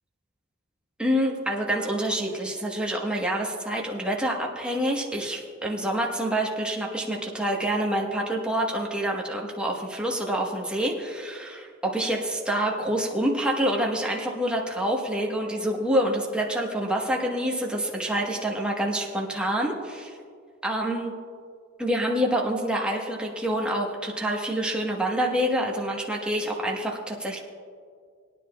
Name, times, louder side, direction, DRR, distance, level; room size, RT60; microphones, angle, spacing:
voice 1, 1.0-20.1 20.6-21.1 21.8-27.4, right 1 dB, 5° right, -1 dB, 1.2 m, -27 dB
21.0 x 9.9 x 2.3 m, 2.1 s
head